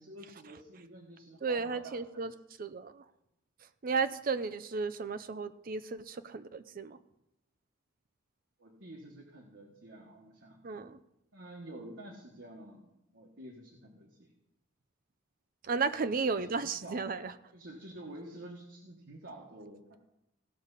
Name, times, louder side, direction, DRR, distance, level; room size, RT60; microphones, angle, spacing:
voice 1, 0.0-2.3 8.6-10.9 11.3-14.3 15.8-15.9 16.8-17.2 17.5-20.0, right 1 dB, 70° right, -2 dB, 1.5 m, -49 dB
voice 2, 1.4-2.3 2.6-3.0 3.8-7.0 10.6-11.0 15.6-17.3, right 4 dB, 45° right, 12 dB, 0.5 m, -34 dB
16.5 x 6.6 x 4.1 m, 0.85 s
head